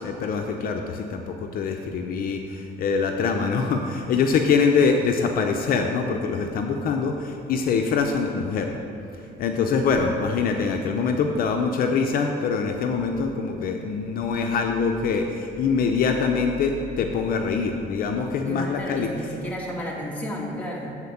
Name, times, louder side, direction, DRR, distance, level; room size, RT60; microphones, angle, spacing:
voice 1, 0.0-8.7 9.4-19.1, left 5 dB, 60° left, 4 dB, 0.5 m, -24 dB
voice 2, 18.4-21.0, equal, 10° left, -3 dB, 1.5 m, -32 dB
8.1 x 4.3 x 7.1 m, 2.7 s
cardioid pair, 110°, 17 cm